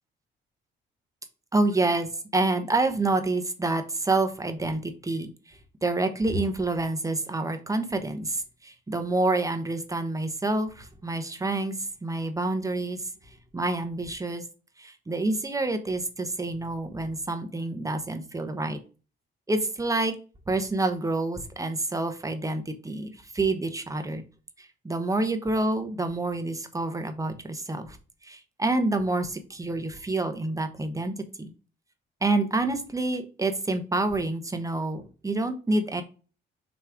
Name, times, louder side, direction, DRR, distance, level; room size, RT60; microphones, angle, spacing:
voice 1, 1.5-5.3 5.8-11.7 12.0-13.0 13.5-14.4 14.8-18.8 19.5-20.1 20.5-24.2 24.6-28.0 28.2-31.5 32.2-36.0, right 2 dB, 15° right, 7 dB, 1.1 m, -28 dB
5.8 x 3.3 x 5.0 m, 0.35 s
cardioid pair, 90°, 20 cm